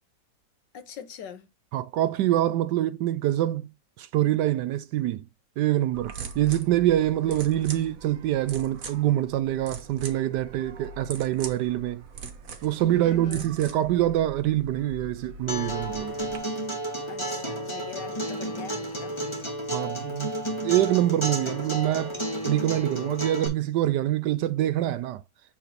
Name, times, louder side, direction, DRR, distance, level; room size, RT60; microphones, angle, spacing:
voice 1, 0.7-1.5 7.3-7.4 12.9-13.5 17.1-19.1, left 7 dB, 70° left, 1.6 m, -42 dB
voice 2, 1.7-5.3 5.6-12.0 12.6-16.2 19.7-20.4 20.6-25.2, right 13 dB, 75° right, 1.1 m, -25 dB
sound 1, 5.9-16.4, right 5 dB, 50° right, 1.5 m, -42 dB
Acoustic guitar, 15.5-23.5, right 1 dB, 15° left, 1.9 m, -32 dB
7.8 x 3.7 x 4.6 m
omnidirectional pair, 2.0 m